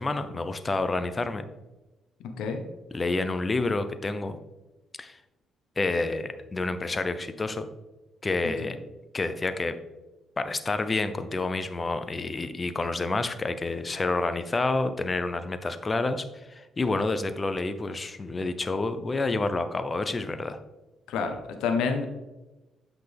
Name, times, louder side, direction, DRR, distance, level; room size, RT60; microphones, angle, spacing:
voice 1, 0.0-1.4 2.9-4.4 5.0-5.2 5.8-7.7 8.2-8.7 9.1-9.8 10.4-20.6, left 3 dB, 30° left, 10 dB, 0.7 m, -29 dB
voice 2, 21.1-22.1, left 5 dB, 85° left, 5 dB, 1.0 m, -28 dB
8.1 x 5.8 x 3.5 m, 1.1 s
cardioid pair, 90°, 0 cm